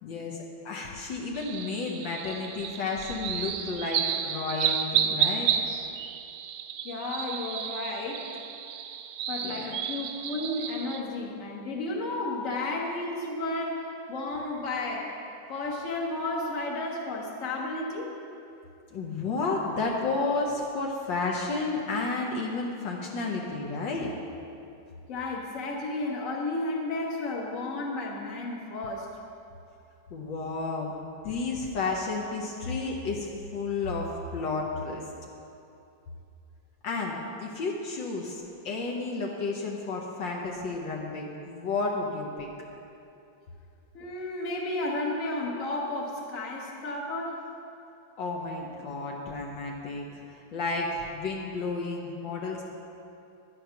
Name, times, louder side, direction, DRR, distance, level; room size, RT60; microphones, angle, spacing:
voice 1, 0.0-5.6 9.4-9.8 18.9-24.1 30.1-30.9 31.2-35.0 36.8-42.5 48.2-50.2 50.5-52.6, left 3 dB, 70° left, -1 dB, 1.7 m, -32 dB
sound 1, 1.4-11.0, right 9 dB, 80° right, 1.3 m, -31 dB
voice 2, 6.8-8.3 9.3-15.1 15.5-18.1 25.1-29.1 43.9-47.4, left 2 dB, 45° left, -1 dB, 1.7 m, -32 dB
11.0 x 9.0 x 5.7 m, 2.7 s
omnidirectional pair, 2.1 m